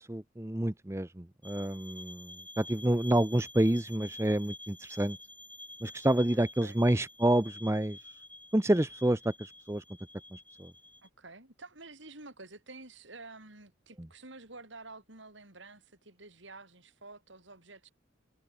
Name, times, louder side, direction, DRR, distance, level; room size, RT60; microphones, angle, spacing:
voice 1, 0.0-5.2 5.8-8.0 8.5-9.8 10.3-10.7, right 1 dB, 15° right, 0.7 m, -28 dB
sound 1, 1.4-11.1, left 2 dB, 10° left, 4.0 m, -49 dB
voice 2, 6.3-6.8 11.0-17.9, right 3 dB, 70° right, 6.5 m, -50 dB
head